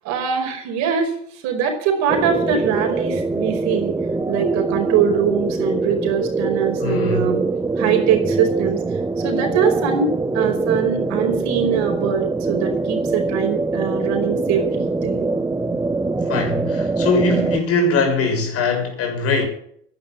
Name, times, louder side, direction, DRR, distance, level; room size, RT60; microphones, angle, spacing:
voice 1, 0.0-3.9 4.3-7.4 7.8-8.8 9.2-15.3, right 7 dB, 60° right, 5.0 m, -22 dB
sound 1, 2.1-17.6, right 3 dB, 10° right, 1.0 m, -23 dB
voice 2, 6.8-7.3 14.5-14.6 16.2-19.5, left 3 dB, 50° left, 6.8 m, -21 dB
11.0 x 10.5 x 9.6 m
hypercardioid pair, 85°, 31 cm